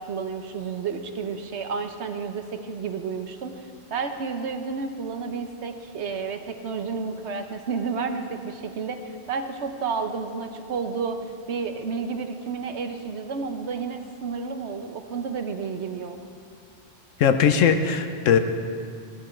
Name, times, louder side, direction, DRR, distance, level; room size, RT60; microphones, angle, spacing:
voice 1, 0.0-3.6 3.9-11.2 11.5-16.2, right 5 dB, 65° right, 7 dB, 1.1 m, -31 dB
voice 2, 17.2-18.4, left 7 dB, 85° left, 8 dB, 1.1 m, -19 dB
16.0 x 12.0 x 4.4 m, 2.4 s
omnidirectional pair, 1.3 m